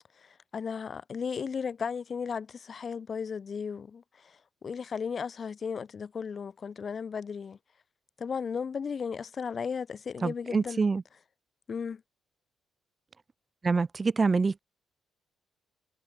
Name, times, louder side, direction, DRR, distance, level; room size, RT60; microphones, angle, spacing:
voice 1, 0.2-7.6 8.2-10.8 11.7-12.0, left 6 dB, 45° left, 1.7 m, -35 dB
voice 2, 10.2-11.0 13.6-14.6, right 4 dB, 30° right, 0.8 m, -26 dB
cardioid pair, 90°, 0 cm